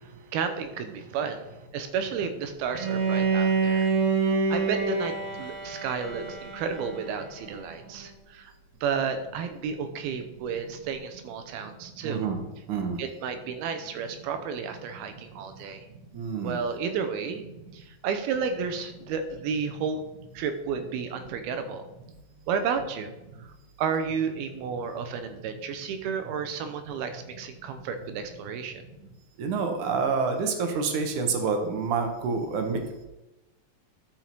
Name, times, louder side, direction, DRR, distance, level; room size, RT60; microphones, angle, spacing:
voice 1, 0.0-3.9 4.5-8.5 8.8-12.2 13.0-15.9 16.4-17.4 17.7-20.0 20.3-21.8 22.5-23.1 23.4-23.5 23.8-28.8, right 6 dB, 90° right, 8 dB, 2.7 m, -32 dB
Bowed string instrument, 2.7-7.7, right 4 dB, 50° right, 1.9 m, -27 dB
voice 2, 12.0-12.4 12.7-13.0 16.1-16.6 29.4-32.8, right 5 dB, 65° right, 5 dB, 2.2 m, -27 dB
12.0 x 5.5 x 4.5 m, 1.0 s
omnidirectional pair, 4.3 m